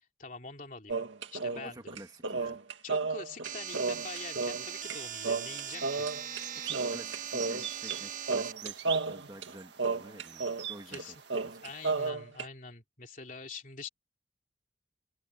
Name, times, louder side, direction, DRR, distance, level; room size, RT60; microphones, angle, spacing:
voice 1, 0.2-2.0 2.8-6.1 10.8-11.2 11.6-13.9, left 4 dB, 45° left, 3.4 m, -45 dB
sound 1, 0.9-5.0 5.2-6.4 6.7-8.0 8.3-10.7 10.9-11.0 11.3-12.5, right 3 dB, 90° right, 2.2 m, -33 dB
voice 2, 1.5-2.6 6.6-11.2 11.4-11.9, right 1 dB, 20° right, 2.0 m, -50 dB
sound 2, 3.4-8.5, right 9 dB, 45° right, 1.3 m, -40 dB
sound 3, 3.7-12.1, right 10 dB, 70° right, 1.6 m, -46 dB
head